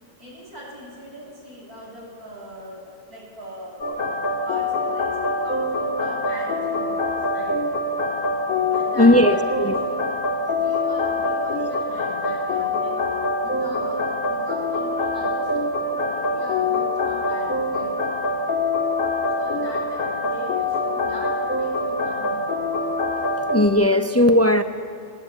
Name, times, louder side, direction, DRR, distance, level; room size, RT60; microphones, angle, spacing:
voice 1, 0.2-4.0 4.4-7.6 8.7-13.1 13.4-18.0 19.3-22.7, equal, 75° right, -4 dB, 7.6 m, -41 dB
sound 1, 3.8-23.7, left 2 dB, 60° left, 2.1 m, -24 dB
voice 2, 8.9-9.8 23.5-24.6, left 1 dB, 20° left, 7 dB, 0.4 m, -17 dB
20.5 x 18.0 x 8.7 m, 2.3 s
omnidirectional pair, 1.6 m